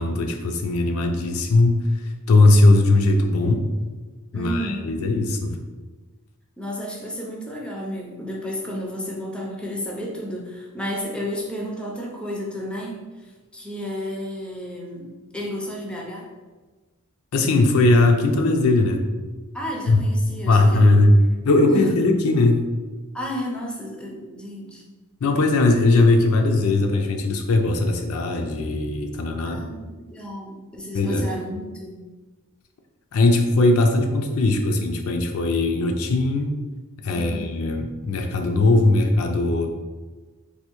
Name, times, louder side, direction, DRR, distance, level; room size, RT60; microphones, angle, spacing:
voice 1, 0.0-1.8 2.3-3.6 4.3-5.6 17.3-19.0 19.9-20.0 20.5-21.2 21.4-22.7 25.2-29.6 30.9-31.3 33.1-36.6 37.0-39.7, left 2 dB, 70° left, 4 dB, 0.4 m, -19 dB
voice 2, 4.3-4.8 6.6-16.3 19.5-20.9 21.7-21.9 23.1-24.8 29.5-32.0 37.1-37.5, equal, 5° left, -2 dB, 0.4 m, -32 dB
3.4 x 2.4 x 2.9 m, 1.3 s
head